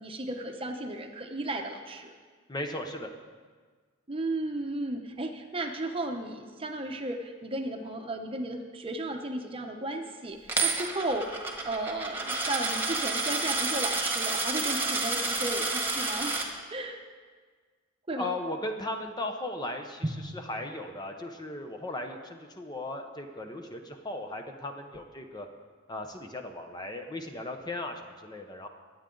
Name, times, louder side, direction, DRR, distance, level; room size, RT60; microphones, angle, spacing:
voice 1, 0.0-2.1 4.1-11.4 11.6-16.4 16.7-17.0 18.1-18.3, right 1 dB, 30° right, 4 dB, 0.9 m, -34 dB
voice 2, 2.5-3.1 18.1-20.1 20.3-25.5 25.9-28.7, left 2 dB, 20° left, 4 dB, 0.9 m, -37 dB
Coin (dropping), 10.5-16.5, right 3 dB, 10° right, 1.6 m, -30 dB
22.5 x 8.7 x 3.9 m, 1.5 s
head